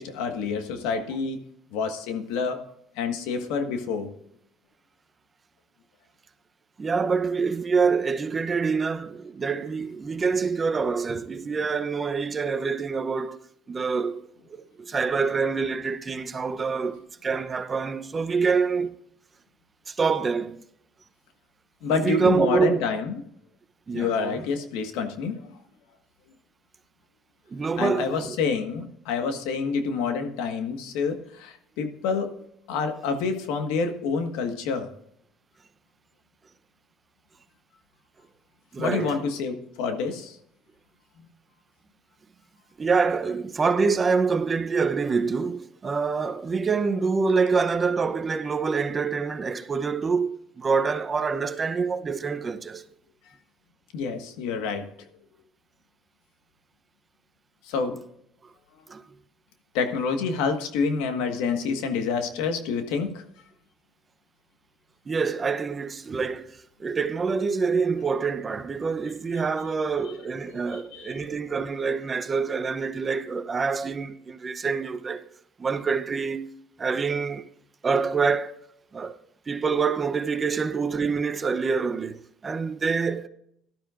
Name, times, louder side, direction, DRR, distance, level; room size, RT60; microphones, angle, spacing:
voice 1, 0.0-1.4 1.7-2.6 2.9-4.1 21.8-23.2 23.9-25.5 27.8-32.3 32.7-34.9 38.8-40.4 53.9-54.8 57.6-58.0 59.7-63.2 70.7-71.2, left 5 dB, 85° left, 1.5 m, -28 dB
voice 2, 6.8-13.4 13.7-14.2 14.5-18.9 19.9-20.6 22.0-22.8 23.9-24.4 27.5-28.4 38.7-39.1 42.8-52.9 58.9-59.0 65.1-75.2 75.6-76.5 76.8-77.5 77.8-78.5 78.9-79.2 79.5-83.3, right 5 dB, 25° right, 0.7 m, -26 dB
17.5 x 12.5 x 2.5 m
cardioid pair, 110°, 0 cm